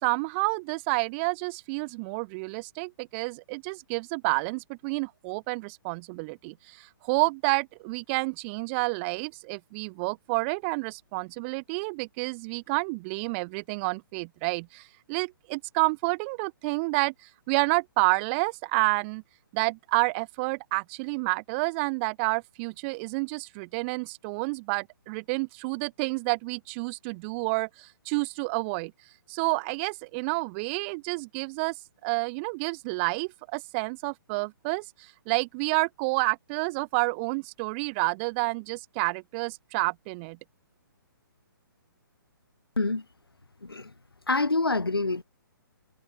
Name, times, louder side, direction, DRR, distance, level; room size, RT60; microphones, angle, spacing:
voice 1, 0.0-19.2 19.5-28.9 29.3-31.8 32.0-40.4, right 29 dB, 30° right, 4.2 m, -29 dB
voice 2, 44.3-45.2, left 3 dB, 85° left, 2.1 m, -26 dB
figure-of-eight pair, 130°, 12 cm